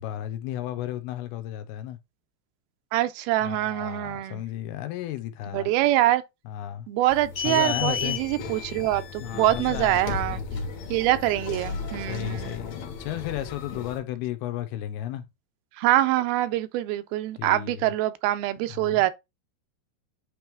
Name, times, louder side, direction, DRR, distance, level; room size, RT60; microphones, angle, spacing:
voice 1, 0.0-2.0 3.4-5.7 6.5-6.9 7.4-8.2 9.2-10.7 12.1-15.3 17.4-17.9 18.7-19.1, left 12 dB, 90° left, 2.7 m, -34 dB
voice 2, 2.9-4.4 5.5-6.2 6.9-10.4 10.9-12.5 15.8-19.1, right 15 dB, 85° right, 2.4 m, -24 dB
sound 1, 7.1-14.0, left 6 dB, 60° left, 2.1 m, -34 dB
8.7 x 3.1 x 3.5 m
omnidirectional pair, 4.4 m